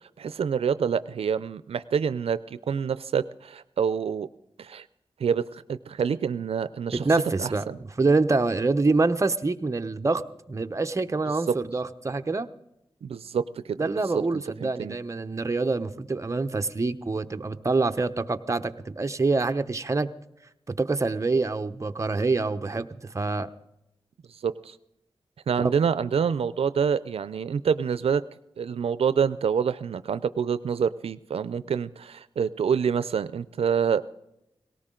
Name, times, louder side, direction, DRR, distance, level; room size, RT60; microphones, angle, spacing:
voice 1, 0.2-4.3 4.6-4.9 5.2-7.1 7.4-7.8 13.0-15.0 24.3-24.8 25.5-28.2 28.6-34.1, right 7 dB, 85° right, 15 dB, 0.4 m, -27 dB
voice 2, 6.9-10.2 10.5-12.5 13.8-20.1 20.7-23.5 25.6-25.7, right 3 dB, 30° right, 8 dB, 0.8 m, -26 dB
18.5 x 17.5 x 3.8 m, 0.85 s
wide cardioid pair, 85°, 10 cm